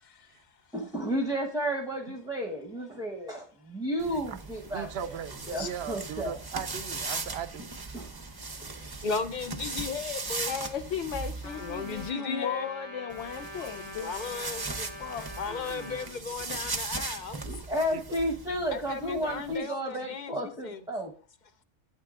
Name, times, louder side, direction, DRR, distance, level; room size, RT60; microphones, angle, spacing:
voice 1, 0.7-5.1 5.5-6.4 7.9-8.1 8.6-9.0 17.4-21.1, equal, 5° right, 1.0 m, -32 dB
sound 1, 4.0-12.1 13.1-19.6, right 3 dB, 25° right, 0.6 m, -39 dB
voice 2, 4.7-7.7 15.7-16.1 16.5-16.6 17.9-18.0 19.5-19.6, right 9 dB, 65° right, 0.8 m, -39 dB
voice 3, 9.0-10.5 11.6-12.7 14.0-17.4 18.7-20.8, left 5 dB, 50° left, 0.6 m, -36 dB
voice 4, 10.5-14.4 15.0-15.8, left 7 dB, 70° left, 1.0 m, -36 dB
Trumpet, 11.4-16.1, left 1 dB, 20° left, 1.4 m, -44 dB
12.5 x 8.4 x 2.5 m
omnidirectional pair, 1.3 m